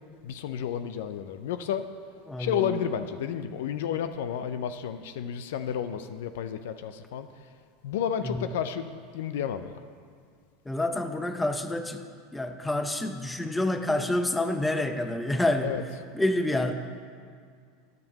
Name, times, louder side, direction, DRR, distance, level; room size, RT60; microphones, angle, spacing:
voice 1, 0.2-1.9 2.4-7.3 7.8-9.7 15.6-15.8, left 8 dB, 75° left, 10 dB, 0.4 m, -31 dB
voice 2, 2.3-2.8 8.2-8.5 10.7-12.1 12.3-15.8 16.1-16.7, left 1 dB, 10° left, 7 dB, 0.7 m, -28 dB
10.5 x 5.3 x 7.4 m, 2.1 s
hypercardioid pair, 90°, 0 cm